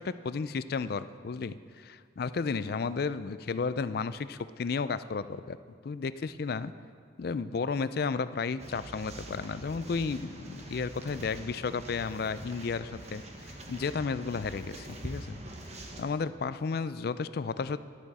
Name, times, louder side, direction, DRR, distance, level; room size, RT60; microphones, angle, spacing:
voice 1, 0.0-5.6 5.8-6.7 7.2-15.4 16.0-17.8, left 5 dB, 55° left, 14 dB, 0.4 m, -33 dB
sound 1, 8.6-16.1, right 1 dB, 35° right, 1.2 m, -44 dB
13.5 x 11.5 x 4.2 m, 2.1 s
head